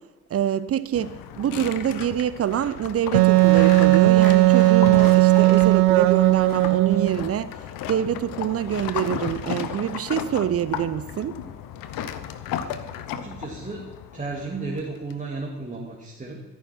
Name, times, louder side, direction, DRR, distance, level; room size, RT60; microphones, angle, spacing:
voice 1, 0.3-7.5 7.9-11.4, right 10 dB, 40° right, 16 dB, 0.6 m, -25 dB
sound 1, 0.9-15.1, left 9 dB, 65° left, 1.0 m, -34 dB
Wind instrument woodwind instrument, 3.1-7.2, right 17 dB, 75° right, 0.6 m, -16 dB
voice 2, 13.1-13.9 14.1-16.4, right 3 dB, 20° right, -2 dB, 2.3 m, -33 dB
15.5 x 9.3 x 4.4 m, 1.2 s
hypercardioid pair, 45°, 37 cm